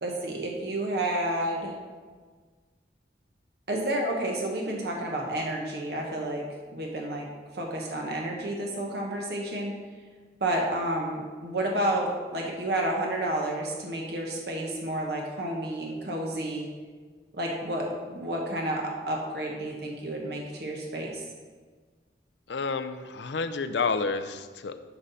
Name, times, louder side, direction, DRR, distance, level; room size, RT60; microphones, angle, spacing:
voice 1, 0.0-1.8 3.7-6.4 6.7-7.3 7.5-9.7 10.4-16.7 17.3-21.2, right 1 dB, 70° right, -1 dB, 1.3 m, -30 dB
voice 2, 22.5-24.8, left 4 dB, 90° left, 9 dB, 0.6 m, -30 dB
11.5 x 5.5 x 4.1 m, 1.5 s
head